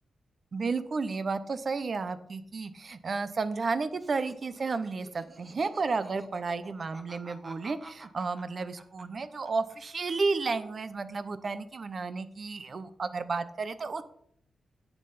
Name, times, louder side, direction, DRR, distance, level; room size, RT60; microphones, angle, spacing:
voice 1, 0.5-14.0, right 4 dB, 45° right, 12 dB, 0.7 m, -32 dB
Laughter, 4.0-9.7 10.0-10.8, right 2 dB, 30° right, 1.5 m, -51 dB
9.9 x 7.6 x 5.7 m, 0.66 s
wide cardioid pair, 115°, 0 cm